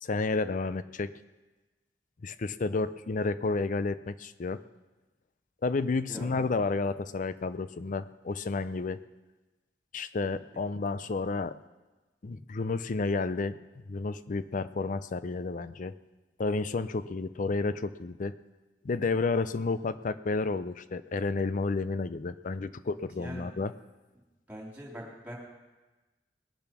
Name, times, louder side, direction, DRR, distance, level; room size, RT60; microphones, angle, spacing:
voice 1, 0.0-1.1 2.2-4.6 5.6-9.0 9.9-11.5 12.2-13.6 13.9-15.9 16.4-18.3 18.8-23.7, left 3 dB, 45° left, 14 dB, 0.5 m, -31 dB
voice 2, 23.2-23.6 24.5-25.3, equal, 10° right, -3 dB, 3.4 m, -42 dB
20.5 x 7.0 x 6.0 m, 1.2 s
head